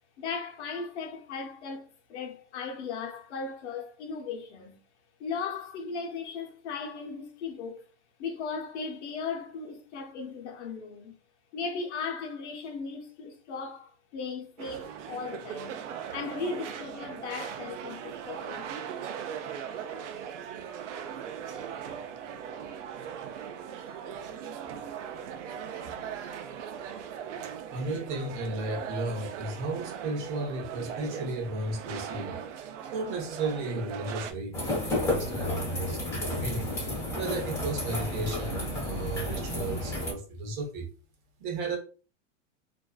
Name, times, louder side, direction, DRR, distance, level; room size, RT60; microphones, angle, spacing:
voice 1, 0.2-4.8 5.2-7.8 8.2-11.2 11.5-15.8 16.1-18.7, left 5 dB, 70° left, 0.8 m, -37 dB
sound 1, 14.6-34.3, right 8 dB, 85° right, 0.5 m, -39 dB
voice 2, 27.7-32.4 32.9-36.7 37.1-40.9 41.4-41.8, right 2 dB, 45° right, 0.8 m, -34 dB
sound 2, 34.5-40.1, left 1 dB, 10° left, 0.7 m, -32 dB
2.5 x 2.2 x 2.3 m
supercardioid pair, 150°, 35 cm